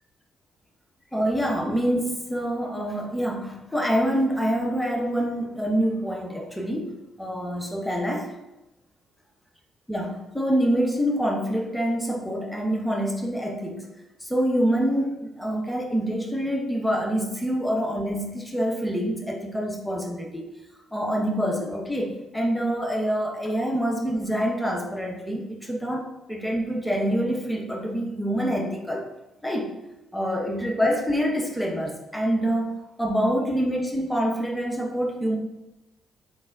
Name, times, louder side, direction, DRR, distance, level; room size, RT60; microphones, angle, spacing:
voice 1, 1.1-8.3 9.9-13.9 14.2-20.5 20.9-29.1 29.4-29.7 30.1-35.4, equal, 5° left, 0 dB, 0.9 m, -26 dB
4.3 x 4.0 x 2.4 m, 0.94 s
hypercardioid pair, 45°, 0 cm